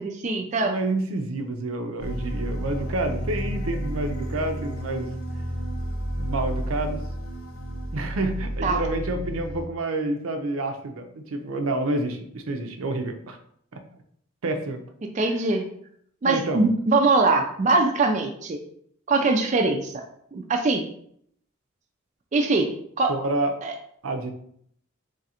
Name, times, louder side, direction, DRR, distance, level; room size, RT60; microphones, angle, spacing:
voice 1, 0.0-0.7 8.6-8.8 15.2-15.6 16.2-18.6 19.1-20.0 20.3-20.8 22.3-22.7 23.0-23.1 23.6-23.7, right 3 dB, 35° right, 3 dB, 0.3 m, -22 dB
voice 2, 0.6-5.1 6.2-7.0 7.9-13.4 13.7-13.8 14.4-14.8 16.2-16.7 23.1-23.5 24.0-24.3, right 2 dB, 85° right, 6 dB, 0.5 m, -28 dB
sound 1, 2.0-9.6, equal, 85° left, 0.8 m, -31 dB
3.2 x 2.5 x 4.2 m, 0.66 s
head